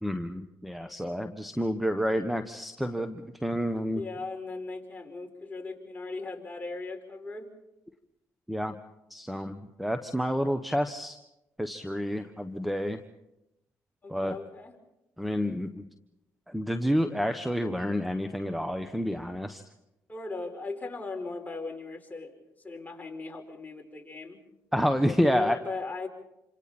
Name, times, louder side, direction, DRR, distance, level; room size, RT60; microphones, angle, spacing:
voice 1, 0.0-4.0 8.5-8.7 9.1-11.2 11.6-13.0 14.1-14.4 15.2-15.9 16.5-19.6 24.7-25.6, equal, ahead, 8 dB, 1.4 m, -29 dB
voice 2, 3.9-7.5 14.0-14.7 20.1-24.4 25.2-26.1, left 3 dB, 25° left, 2 dB, 5.0 m, -38 dB
28.0 x 26.0 x 4.4 m, 0.90 s
supercardioid pair, 65°, 7 cm